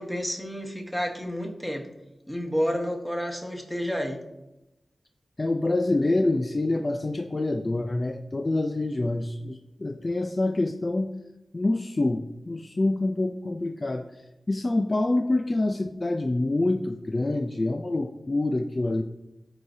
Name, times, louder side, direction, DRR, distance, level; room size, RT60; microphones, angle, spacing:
voice 1, 0.0-1.8 2.3-4.2, equal, 5° left, 1 dB, 1.5 m, -30 dB
voice 2, 5.4-11.1 11.5-14.0 14.5-19.0, left 2 dB, 35° left, 5 dB, 0.4 m, -26 dB
13.5 x 4.8 x 2.7 m, 0.94 s
wide cardioid pair, 70°, 0 cm